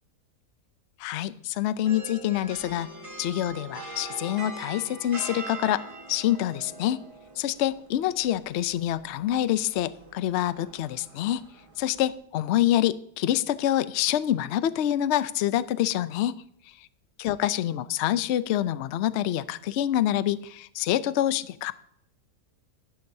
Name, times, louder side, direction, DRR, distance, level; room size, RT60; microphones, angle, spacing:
voice 1, 1.0-2.9 3.2-5.8 6.1-7.0 7.4-11.4 11.8-16.4 17.2-21.7, left 12 dB, 70° left, 15 dB, 0.6 m, -26 dB
sound 1, 1.8-12.2, right 2 dB, 20° right, 1.2 m, -43 dB
12.5 x 11.5 x 2.7 m, 0.69 s
omnidirectional pair, 1.7 m